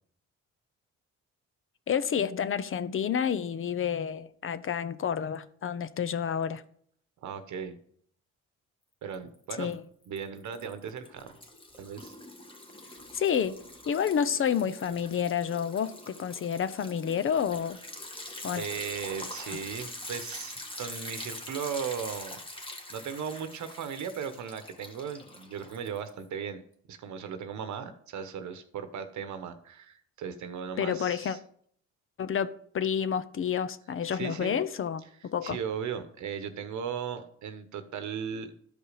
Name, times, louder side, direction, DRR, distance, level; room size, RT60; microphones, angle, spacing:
voice 1, 1.9-6.6 9.6-9.8 13.1-13.6 13.9-17.8 18.4-18.6 19.5-19.6 30.8-31.4 32.2-35.6, left 8 dB, 45° left, 0.7 m, -29 dB
voice 2, 7.2-7.8 9.0-9.8 10.1-11.4 11.8-12.1 18.6-22.4 22.9-26.6 26.9-31.4 34.1-34.5 35.4-38.5, right 7 dB, 70° right, 1.1 m, -37 dB
Liquid, 9.1-9.7 10.0-26.2, left 1 dB, 15° left, 1.6 m, -44 dB
12.5 x 5.2 x 5.0 m
cardioid pair, 90°, 30 cm